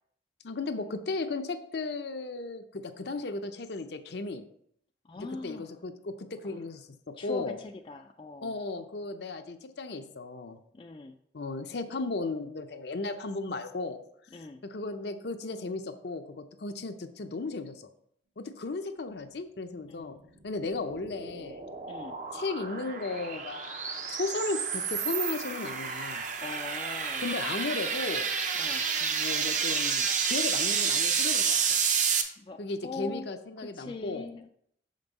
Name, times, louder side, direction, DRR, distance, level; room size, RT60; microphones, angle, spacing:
voice 1, 0.4-4.4 5.2-7.6 8.4-10.6 11.3-14.0 14.6-17.9 18.4-20.2 20.4-21.6 22.3-26.3 27.2-28.3 29.0-31.8 32.6-34.3, left 3 dB, 65° left, 8 dB, 0.6 m, -35 dB
voice 2, 5.0-5.8 6.4-6.6 7.2-8.6 10.7-11.2 14.3-14.6 19.9-20.3 21.9-22.2 26.4-27.3 28.6-28.9 32.4-33.3 33.6-34.5, left 3 dB, 30° left, 4 dB, 0.3 m, -42 dB
sound 1, 20.5-32.2, right 6 dB, 40° right, 0.6 m, -30 dB
6.8 x 5.2 x 4.0 m, 0.68 s
head